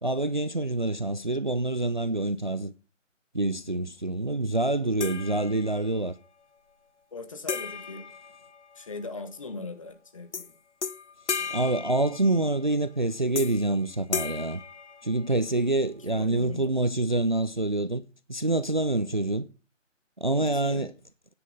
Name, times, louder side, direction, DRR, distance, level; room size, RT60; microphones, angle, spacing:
voice 1, 0.0-2.7 3.3-6.2 11.5-14.6 15.0-18.0 18.3-19.5 20.2-20.9, right 2 dB, 40° right, 0.4 m, -26 dB
sound 1, 5.0-6.0 7.5-9.0 10.3-10.5 10.8-12.6 13.3-13.7 14.1-15.5, left 6 dB, 65° left, 0.7 m, -35 dB
voice 2, 7.1-8.0 8.7-10.5 11.4-11.6 16.0-16.7 20.4-20.8, left 3 dB, 25° left, 1.2 m, -39 dB
9.9 x 9.3 x 3.6 m
figure-of-eight pair, 160°, 38 cm